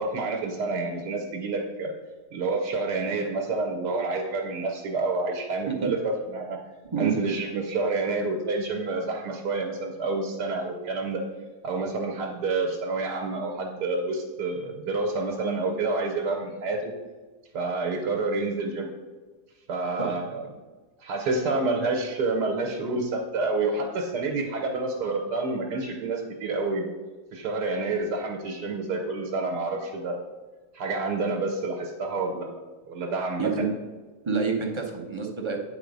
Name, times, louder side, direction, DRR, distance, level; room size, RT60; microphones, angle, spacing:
voice 1, 0.0-1.9 2.3-6.6 7.0-11.2 11.6-16.9 17.5-18.9 19.7-20.5 21.0-26.9 27.3-30.2 30.7-32.5 32.9-33.5, right 3 dB, 80° right, 2 dB, 1.4 m, -28 dB
voice 2, 34.2-35.7, right 5 dB, 25° right, 0 dB, 0.6 m, -28 dB
8.6 x 4.0 x 5.1 m, 1.3 s
omnidirectional pair, 1.7 m